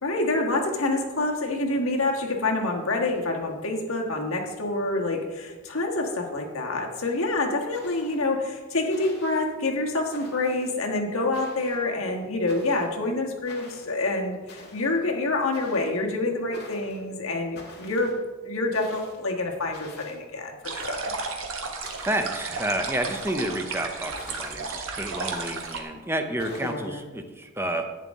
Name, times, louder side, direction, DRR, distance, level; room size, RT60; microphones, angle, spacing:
voice 1, 0.0-18.1 18.4-21.1 26.6-27.0, left 2 dB, 75° left, 1 dB, 1.5 m, -27 dB
sound 1, 7.0-7.2 7.7-8.3 8.9-9.4 10.1-10.7 11.3-11.9 12.5-12.9 13.4-13.9 14.5-15.0 15.5-16.0 16.5-17.0 17.5-18.2 18.7-19.2 19.7-20.2 20.8-21.3 21.8-22.5 23.0-23.5 24.2-24.7 25.3-25.8 26.4-26.7, left 3 dB, 50° left, 1.8 m, -46 dB
sound 2, 20.6-25.8, right 4 dB, 70° right, 1.3 m, -33 dB
voice 2, 22.1-27.8, right 1 dB, 10° right, 6 dB, 0.6 m, -30 dB
11.0 x 8.6 x 3.6 m, 1.3 s
head